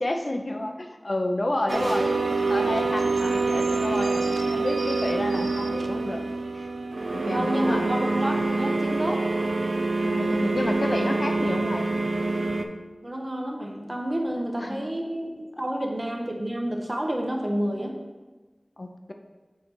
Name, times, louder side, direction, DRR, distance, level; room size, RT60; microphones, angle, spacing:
voice 1, 0.0-2.1 2.5-6.3 6.5-6.7 7.1-7.8 10.0-11.9 14.4-14.9 18.8-19.1, left 1 dB, 55° left, 4 dB, 0.5 m, -30 dB
sound 1, 1.7-12.6, right 3 dB, 80° right, 0.4 m, -26 dB
voice 2, 7.3-9.3 13.0-18.0, equal, 40° right, 1 dB, 0.9 m, -29 dB
6.5 x 3.2 x 4.4 m, 1.2 s
wide cardioid pair, 45°, 0 cm